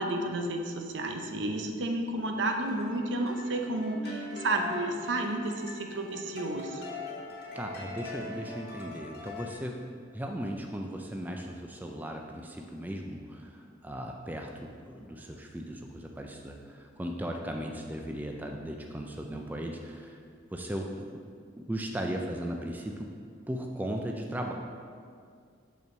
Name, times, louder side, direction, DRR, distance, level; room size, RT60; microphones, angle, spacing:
voice 1, 0.0-6.8, right 2 dB, 65° right, 4 dB, 0.7 m, -31 dB
sound 1, 2.3-9.6, left 3 dB, 55° left, 1.3 m, -42 dB
voice 2, 7.5-9.8 10.1-20.2 20.5-21.1 21.6-23.1 23.5-24.5, equal, 10° right, 2 dB, 0.3 m, -37 dB
5.7 x 4.5 x 6.1 m, 2.2 s
head